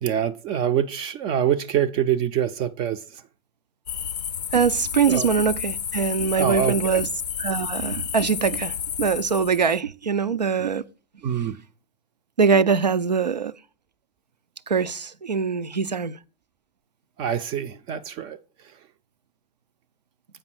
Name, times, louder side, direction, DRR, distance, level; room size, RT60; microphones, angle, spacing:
voice 1, 0.0-3.2 5.1-5.3 6.4-7.0 11.2-11.6 17.2-18.4, right 9 dB, 25° right, 0.4 m, -25 dB
sound 1, 3.9-9.8, left 8 dB, 75° left, 0.4 m, -31 dB
voice 2, 4.5-7.1 7.4-10.8 12.4-13.5 14.7-16.2, right 6 dB, 85° right, 0.4 m, -23 dB
7.6 x 5.3 x 4.7 m
figure-of-eight pair, 100°, 21 cm